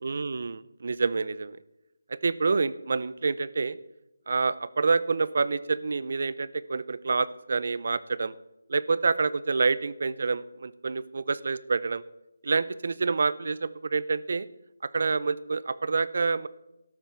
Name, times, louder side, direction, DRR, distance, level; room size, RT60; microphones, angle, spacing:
voice 1, 0.0-1.6 2.1-3.8 4.3-8.3 8.7-12.0 12.4-14.5 14.8-16.5, right 4 dB, 40° right, 18 dB, 0.5 m, -27 dB
13.0 x 12.5 x 4.5 m, 0.94 s
figure-of-eight pair, 175°, 0 cm